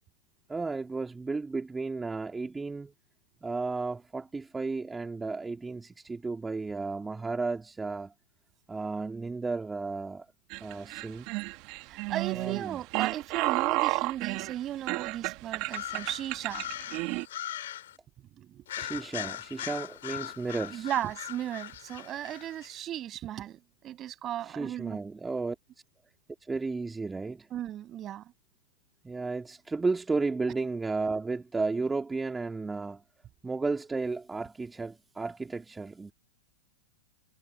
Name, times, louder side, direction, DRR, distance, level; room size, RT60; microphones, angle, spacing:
voice 1, 0.5-2.9 3.4-8.1 8.7-10.3 10.6-11.3 12.3-12.8 18.8-20.9 24.5-25.6 26.5-27.5 29.0-33.0 33.4-36.1, right 3 dB, 10° right, 2.1 m, -33 dB
sound 1, 10.5-17.2, right 25 dB, 50° right, 1.9 m, -32 dB
voice 2, 11.9-16.7 18.4-18.6 20.7-25.0 27.5-28.2, right 12 dB, 30° right, 7.0 m, -36 dB
sound 2, 15.7-18.0 18.7-22.7, left 12 dB, 70° left, 3.2 m, -40 dB
hypercardioid pair, 105°, 0 cm